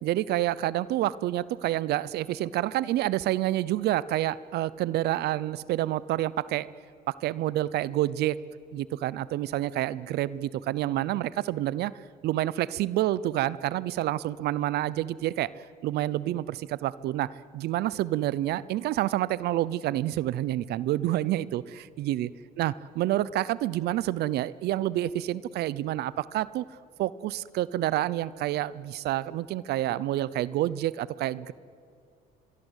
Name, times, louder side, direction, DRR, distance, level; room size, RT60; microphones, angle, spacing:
voice 1, 0.0-6.7 7.1-8.4 8.7-11.9 12.2-22.3 22.6-26.6 27.0-31.5, right 14 dB, 75° right, 19 dB, 0.7 m, -28 dB
24.0 x 23.0 x 8.2 m, 2.4 s
cardioid pair, 110°, 17 cm